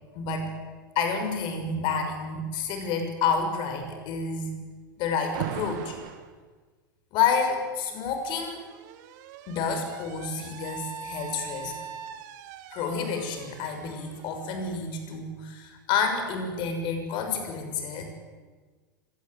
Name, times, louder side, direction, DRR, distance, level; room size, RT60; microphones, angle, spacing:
voice 1, 0.1-0.5 0.9-4.6 5.0-6.0 7.1-8.6 9.5-11.7 12.7-18.0, left 5 dB, 45° left, 6 dB, 6.4 m, -29 dB
Alarm, 5.3-6.3 7.5-15.2, right 10 dB, 55° right, 2.4 m, -41 dB
24.5 x 18.0 x 9.6 m, 1.4 s
hypercardioid pair, 95°, 11 cm